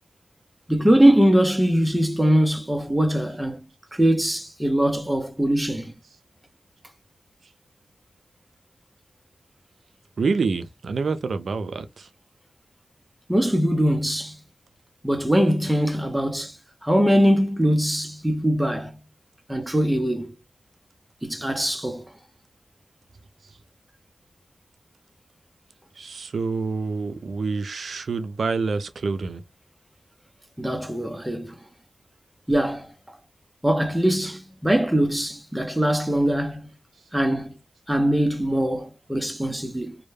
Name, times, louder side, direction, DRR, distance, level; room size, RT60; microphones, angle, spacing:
voice 1, 0.7-3.7 3.9-5.9 13.3-14.4 15.0-16.6 16.8-18.9 19.5-20.3 21.2-22.1 30.6-31.6 32.5-33.2 33.6-36.6 37.1-37.6 37.9-40.0, equal, 10° right, 0.6 m, -22 dB
voice 2, 10.2-12.1 26.0-29.4, right 4 dB, 80° right, 0.3 m, -27 dB
2.1 x 2.1 x 3.1 m
cardioid pair, 45°, 0 cm